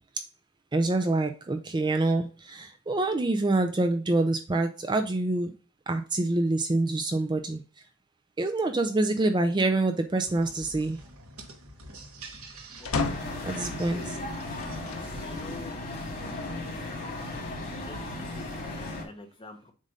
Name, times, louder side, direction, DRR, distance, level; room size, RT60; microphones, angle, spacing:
voice 1, 0.7-5.5 5.9-7.6 8.4-11.0 13.4-14.2, right 2 dB, 20° right, 6 dB, 0.4 m, -26 dB
sound 1, 10.2-15.4, right 2 dB, 80° right, 1.3 m, -47 dB
sound 2, 12.8-13.5 14.6-15.1 15.8-15.9 17.1-17.9, left 4 dB, 75° left, 0.8 m, -33 dB
voice 2, 12.8-13.2 15.2-15.8 17.8-19.7, left 3 dB, 25° left, 4 dB, 1.0 m, -46 dB
sound 3, 13.0-19.0, left 2 dB, 40° left, 2.4 m, -36 dB
7.4 x 2.6 x 5.2 m, 0.35 s
head